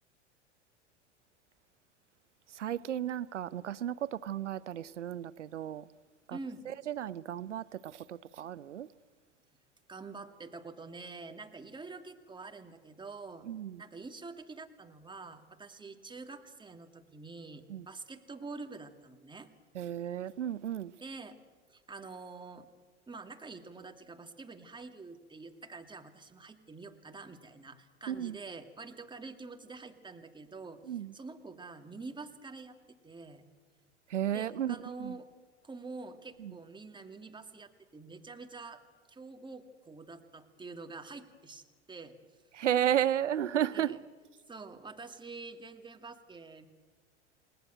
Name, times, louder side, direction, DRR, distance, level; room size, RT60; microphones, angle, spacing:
voice 1, 2.5-5.8 6.3-6.4 6.7-8.9 13.5-13.8 17.7-17.8 19.7-20.9 28.1-28.4 30.9-31.1 34.1-35.1 36.4-36.5 42.5-43.9, right 10 dB, 85° right, 0.6 m, -33 dB
voice 2, 6.3-6.7 9.9-13.5 13.8-19.5 21.0-21.4 21.7-22.7 23.1-33.4 34.3-35.3 35.6-38.8 39.1-42.2 42.6-42.7 43.7-44.0 44.5-46.7, right 3 dB, 15° right, 2.5 m, -46 dB
29.5 x 19.5 x 7.8 m
hypercardioid pair, 85°, 35 cm